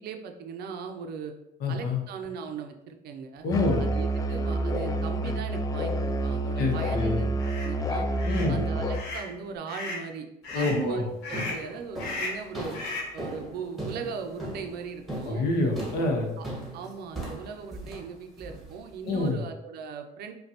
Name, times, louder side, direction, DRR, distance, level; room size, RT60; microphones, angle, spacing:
voice 1, 0.0-1.3 1.7-3.5 3.8-8.1 8.5-10.3 10.5-12.8 13.1-15.4 16.4-16.5 16.7-20.3, right 5 dB, 70° right, 5 dB, 0.5 m, -38 dB
voice 2, 1.6-2.0 3.4-3.8 6.6-7.2 8.2-8.6 10.5-11.0 15.3-16.3 19.1-19.4, left 2 dB, 65° left, 1 dB, 0.9 m, -26 dB
Musical instrument, 3.5-9.1, right 1 dB, 20° left, 0.3 m, -28 dB
sound 1, 7.4-7.7 8.2-8.5 8.9-9.3 9.7-10.1 10.4-10.8 11.2-11.7 12.0-12.4 12.7-13.2, left 3 dB, 85° left, 1.1 m, -35 dB
sound 2, 10.5-10.8 11.3-19.3, right 1 dB, ahead, 1.1 m, -39 dB
5.1 x 2.3 x 2.8 m, 0.88 s
cardioid pair, 110°, 17 cm